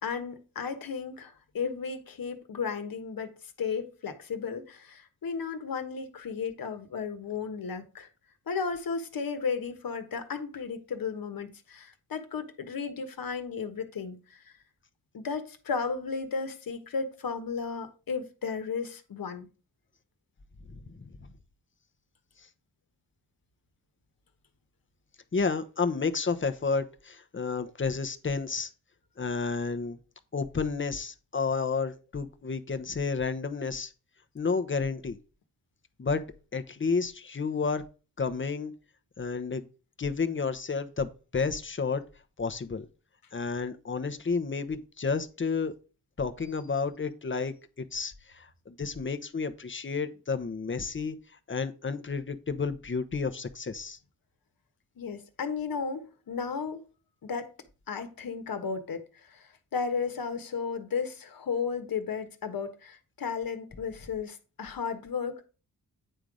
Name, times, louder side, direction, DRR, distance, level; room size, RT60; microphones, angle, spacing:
voice 1, 0.0-3.3 3.6-8.1 8.5-14.5 15.1-19.5 55.0-56.8 57.2-57.5 57.9-65.5, left 5 dB, 65° left, 1.4 m, -34 dB
voice 2, 20.7-21.1 25.3-28.7 29.2-30.0 30.3-33.9 34.3-35.2 36.0-36.2 36.5-37.8 38.2-38.7 39.2-39.7 40.0-42.0 42.4-42.9 43.3-45.7 46.2-51.2 51.5-54.0, left 4 dB, 30° left, 0.9 m, -31 dB
9.0 x 3.8 x 4.9 m
cardioid pair, 55°, 37 cm